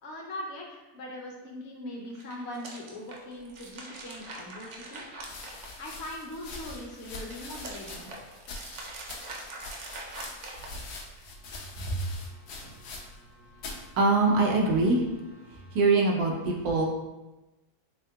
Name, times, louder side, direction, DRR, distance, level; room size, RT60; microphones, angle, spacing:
voice 1, 0.0-5.0 5.8-8.1, left 1 dB, 60° left, -1 dB, 0.8 m, -41 dB
sound 1, 2.0-6.2 6.6-11.2, right 2 dB, 65° right, 0.8 m, -44 dB
sound 2, 4.1-4.2 5.2-13.3 13.6-13.9 14.6-15.1, left 3 dB, 80° left, 1.1 m, -43 dB
voice 2, 14.0-15.1 15.5-16.9, right 3 dB, 85° right, 0 dB, 1.2 m, -23 dB
3.7 x 3.5 x 2.2 m, 1.0 s
omnidirectional pair, 1.6 m